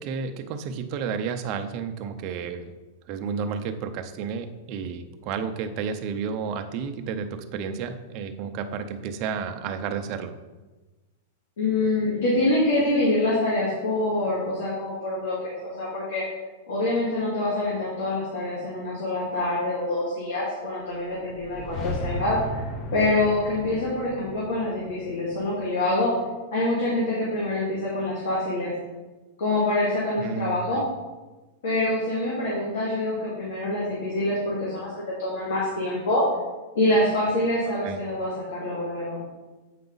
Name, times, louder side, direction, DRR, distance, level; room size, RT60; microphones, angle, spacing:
voice 1, 0.0-2.7 3.1-10.4 30.2-30.9 37.8-38.0, right 6 dB, 35° right, 7 dB, 0.6 m, -31 dB
voice 2, 11.6-16.2 16.7-22.4 22.9-26.1 26.5-28.7 29.4-30.8 31.6-34.9 35.2-36.2 36.7-39.3, left 2 dB, 70° left, -6 dB, 2.3 m, -25 dB
sound 1, 21.1-26.1, left 1 dB, 30° left, 0.6 m, -36 dB
8.2 x 4.8 x 4.0 m, 1.2 s
supercardioid pair, 165°, 0 cm